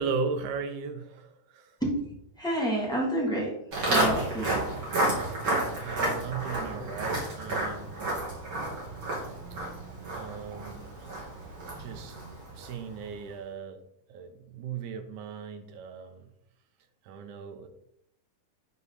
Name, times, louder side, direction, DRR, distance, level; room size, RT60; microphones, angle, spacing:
voice 1, 0.0-1.8 5.8-7.9 10.1-10.8 11.8-12.2 12.6-13.8 14.1-16.3 17.0-17.7, right 5 dB, 75° right, 2.2 m, -36 dB
voice 2, 2.4-4.6 6.7-6.9, right 1 dB, ahead, 2.2 m, -29 dB
Walk footsteps, 3.7-12.9, right 1 dB, 40° right, 3.5 m, -31 dB
11.0 x 4.8 x 4.1 m
omnidirectional pair, 3.7 m